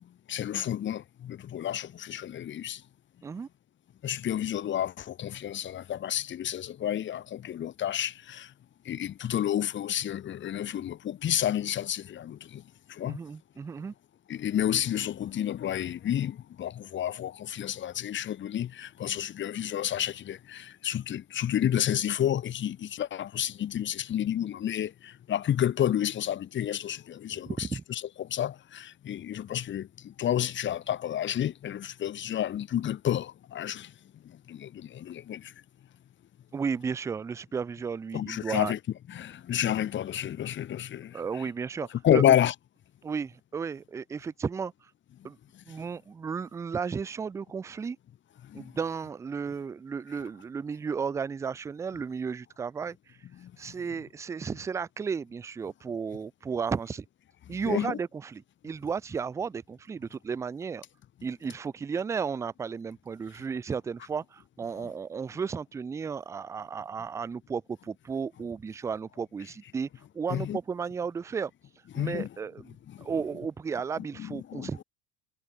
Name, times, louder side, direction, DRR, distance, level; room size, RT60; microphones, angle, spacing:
voice 1, 0.3-2.8 4.0-8.5 8.8-12.6 12.9-13.2 14.3-33.9 34.5-35.5 38.1-38.8 39.1-41.5 42.0-42.5 48.5-48.7 53.4-53.5 57.6-58.0 64.8-64.9 70.3-70.6 71.9-72.3 72.9-73.1 74.0-74.8, left 11 dB, 25° left, 1.6 m, -30 dB
voice 2, 13.0-13.9 27.5-27.8 36.5-38.7 41.1-42.2 43.0-44.7 45.2-45.4 45.7-48.0 48.5-53.2 53.6-57.1 57.5-60.8 61.2-69.9 70.1-71.5 71.9-74.8, right 6 dB, 10° right, 0.3 m, -34 dB
cardioid pair, 150°, 41 cm